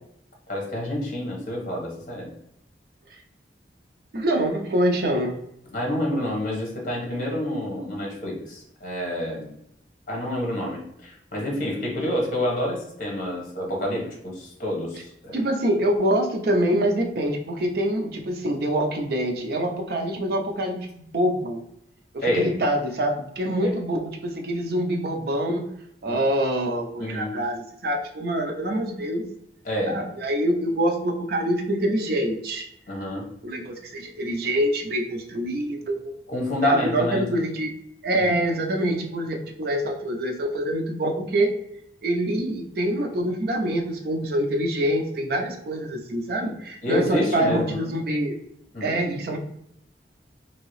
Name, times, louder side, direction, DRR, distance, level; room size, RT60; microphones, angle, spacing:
voice 1, 0.5-2.3 5.7-9.5 10.1-15.4 22.2-22.5 23.6-23.7 26.1-26.2 27.0-27.4 29.6-30.0 32.9-33.3 36.3-37.2 38.2-38.3 46.4-46.5 46.8-47.9 48.7-48.9, left 1 dB, 45° left, -1 dB, 1.0 m, -28 dB
voice 2, 4.1-5.4 15.3-21.6 22.1-25.7 26.0-29.3 29.9-32.7 33.4-36.1 36.6-37.7 38.0-41.6 42.0-48.3 48.8-49.4, right 1 dB, 60° right, 2 dB, 0.5 m, -25 dB
2.9 x 2.7 x 3.0 m, 0.75 s
head